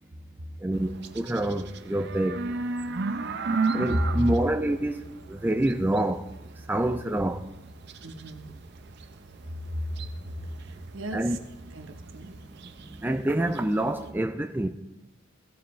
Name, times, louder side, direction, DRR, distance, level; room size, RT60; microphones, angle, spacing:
voice 1, 0.6-2.4 3.7-5.0 5.3-6.3 6.7-7.5 11.1-11.4 12.9-14.7, right 1 dB, 10° right, 0.4 m, -26 dB
sound 1, 0.7-14.1, right 3 dB, 60° right, 0.6 m, -36 dB
voice 2, 3.8-4.2 8.0-8.5 9.5-11.4 11.7-12.4, equal, 75° right, 1.0 m, -33 dB
16.5 x 6.9 x 3.2 m
head